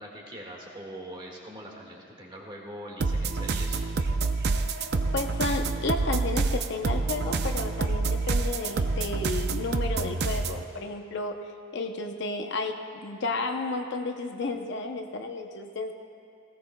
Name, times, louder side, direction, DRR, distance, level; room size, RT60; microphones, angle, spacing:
voice 1, 0.0-3.8, right 1 dB, 20° right, -1 dB, 1.7 m, -42 dB
sound 1, 3.0-10.6, right 3 dB, 50° right, 0.5 m, -27 dB
voice 2, 5.1-11.4 11.7-15.9, left 3 dB, 55° left, 4 dB, 0.7 m, -32 dB
18.5 x 16.5 x 2.2 m, 2.5 s
head